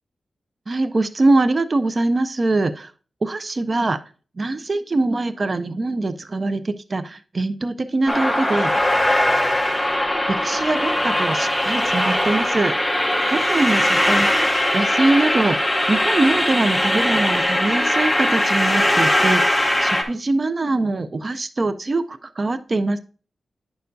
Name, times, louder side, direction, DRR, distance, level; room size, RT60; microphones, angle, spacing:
voice 1, 0.7-2.9 3.2-4.0 4.4-8.7 10.3-12.8 13.3-14.4 14.7-23.0, right 2 dB, 35° right, 11 dB, 0.4 m, -23 dB
sound 1, 8.1-20.0, left 1 dB, 5° left, 0.9 m, -20 dB
9.2 x 6.7 x 2.6 m, 0.38 s
wide cardioid pair, 155°, 0 cm